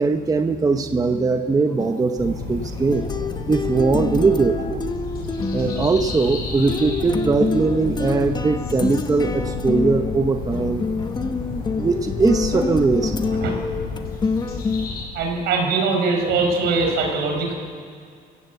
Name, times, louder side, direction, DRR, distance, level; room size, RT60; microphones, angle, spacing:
voice 1, 0.0-3.1 3.5-4.8 5.5-10.8 11.8-13.2, right 4 dB, 20° right, 7 dB, 1.0 m, -20 dB
sound 1, 1.8-14.9, left 4 dB, 25° left, 1.1 m, -27 dB
sound 2, 2.2-15.1, left 4 dB, 60° left, 7.1 m, -31 dB
voice 2, 15.1-17.5, right 3 dB, 80° right, 2 dB, 4.6 m, -21 dB
27.0 x 15.5 x 8.0 m, 2.2 s
cardioid pair, 110°, 17 cm